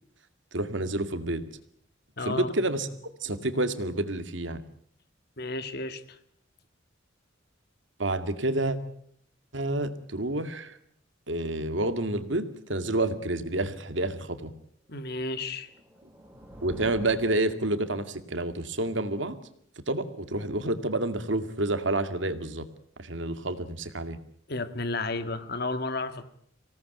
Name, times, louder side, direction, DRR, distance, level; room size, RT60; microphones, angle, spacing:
voice 1, 0.5-1.4 2.2-2.9 3.2-4.6 8.0-8.8 9.5-10.8 11.3-14.5 16.6-19.4 19.9-22.7 23.0-24.2, right 2 dB, 70° right, 9 dB, 2.2 m, -29 dB
voice 2, 2.2-2.5 5.4-6.2 14.9-15.7 24.5-26.2, left 2 dB, 55° left, 10 dB, 1.9 m, -32 dB
sound 1, 15.5-18.3, right 1 dB, 10° right, 3.3 m, -47 dB
26.0 x 18.0 x 9.2 m, 0.68 s
head